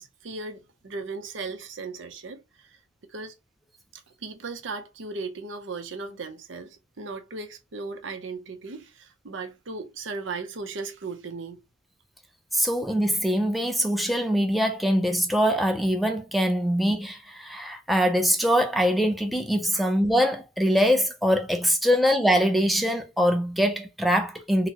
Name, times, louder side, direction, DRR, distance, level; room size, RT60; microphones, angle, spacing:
voice 1, 0.0-2.8 3.1-3.3 3.9-11.6 19.7-19.9, right 3 dB, 70° right, 0.6 m, -37 dB
voice 2, 12.5-24.7, equal, ahead, 0.4 m, -23 dB
3.9 x 2.1 x 2.8 m
head